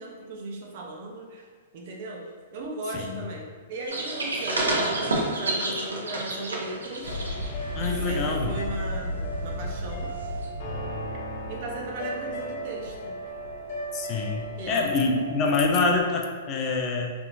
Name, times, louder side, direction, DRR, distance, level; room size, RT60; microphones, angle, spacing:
voice 1, 0.0-1.5 1.7-7.2 7.9-10.1 11.5-13.2 14.6-15.1, right 2 dB, 55° right, -1 dB, 0.7 m, -37 dB
sound 1, 3.9-7.5 7.8-8.1 10.4-10.5, right 2 dB, 90° right, 0.6 m, -29 dB
sound 2, 7.0-16.0, equal, 55° left, 0.9 m, -34 dB
voice 2, 7.7-8.5 13.9-17.1, left 3 dB, 30° left, 1 dB, 0.4 m, -26 dB
3.4 x 2.7 x 2.5 m, 1.5 s
hypercardioid pair, 125°, 0 cm